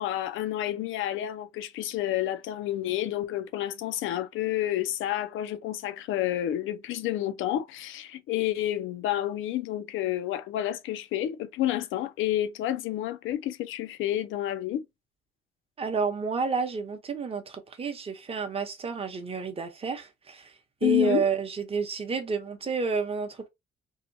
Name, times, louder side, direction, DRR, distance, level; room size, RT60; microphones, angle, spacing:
voice 1, 0.0-14.9 20.8-21.2, left 13 dB, 80° left, 0.4 m, -29 dB
voice 2, 15.8-20.5 20.8-23.5, right 5 dB, 30° right, 0.7 m, -30 dB
2.7 x 2.2 x 2.6 m
cardioid pair, 90°, 20 cm